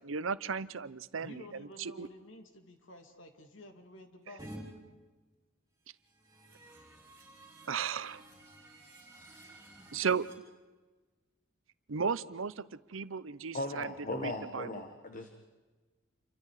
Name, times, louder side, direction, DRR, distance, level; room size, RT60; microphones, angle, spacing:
voice 1, 0.0-2.1 7.7-8.2 9.9-10.3 11.9-14.8, right 6 dB, 75° right, 16 dB, 0.7 m, -35 dB
voice 2, 1.2-4.7, left 1 dB, 70° left, 5 dB, 2.6 m, -52 dB
sound 1, 4.4-4.6 6.0-10.3, right 1 dB, 15° right, 8.0 m, -52 dB
voice 3, 13.5-15.3, left 2 dB, 40° left, 6 dB, 1.5 m, -38 dB
29.0 x 24.0 x 4.9 m, 1.3 s
head